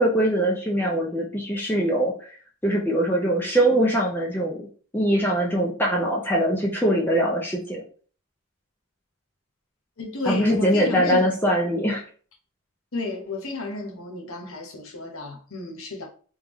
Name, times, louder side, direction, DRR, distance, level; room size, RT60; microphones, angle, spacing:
voice 1, 0.0-2.3 2.6-4.7 4.9-7.8 10.2-12.0, right 1 dB, 10° left, 0.6 m, -22 dB
voice 2, 10.0-11.3 12.9-16.1, left 2 dB, 70° left, 1.0 m, -32 dB
3.5 x 3.5 x 3.0 m
head